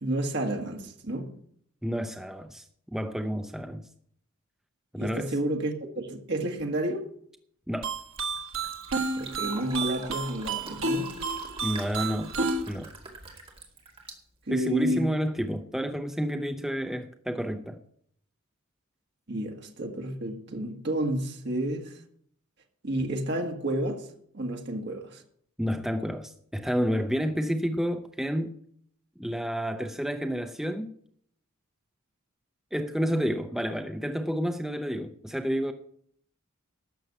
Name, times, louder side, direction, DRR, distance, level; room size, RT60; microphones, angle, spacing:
voice 1, 0.0-1.3 5.0-7.1 9.1-11.1 14.5-15.1 19.3-22.0 22.8-25.2, right 1 dB, 50° right, 1.7 m, -30 dB
voice 2, 1.8-2.6 2.9-3.8 4.9-5.3 7.7-7.9 11.6-12.3 12.7-12.9 14.5-17.8 25.6-28.5 29.2-30.9 32.7-35.7, equal, ahead, 0.5 m, -30 dB
sound 1, 7.8-12.6, right 3 dB, 70° right, 1.3 m, -31 dB
Fill (with liquid), 7.9-15.0, right 3 dB, 25° right, 2.3 m, -46 dB
12.5 x 6.9 x 8.0 m
head